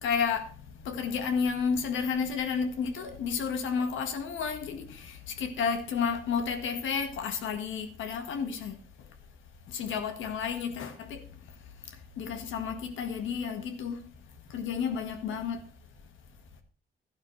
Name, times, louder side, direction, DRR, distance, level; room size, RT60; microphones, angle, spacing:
voice 1, 0.0-8.8 9.7-11.2 12.2-14.1 14.5-15.6, left 6 dB, 80° left, 1.6 m, -31 dB
12.5 x 11.0 x 3.2 m
cardioid pair, 90°, 20 cm